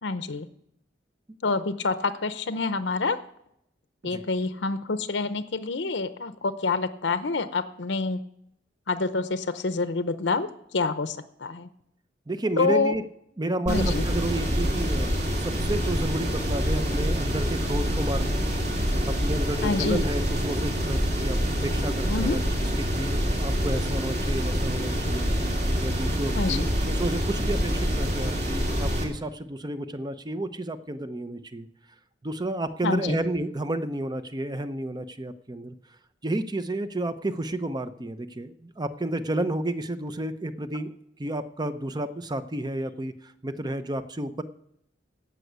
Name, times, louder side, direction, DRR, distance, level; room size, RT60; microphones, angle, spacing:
voice 1, 0.0-0.5 1.4-3.2 4.0-8.2 8.9-11.7 12.6-12.9 13.7-14.0 19.6-20.0 22.1-22.4 26.4-26.7 32.8-33.2, left 3 dB, 70° left, 11 dB, 0.7 m, -27 dB
voice 2, 12.3-13.0 13.4-15.1 15.4-18.4 19.1-22.4 22.8-25.3 25.8-31.7 32.2-35.7 36.2-40.9 41.2-44.4, right 1 dB, 25° right, 11 dB, 0.7 m, -31 dB
sound 1, 13.7-29.0, equal, 40° right, 2.6 m, -26 dB
16.0 x 6.3 x 8.0 m, 0.74 s
head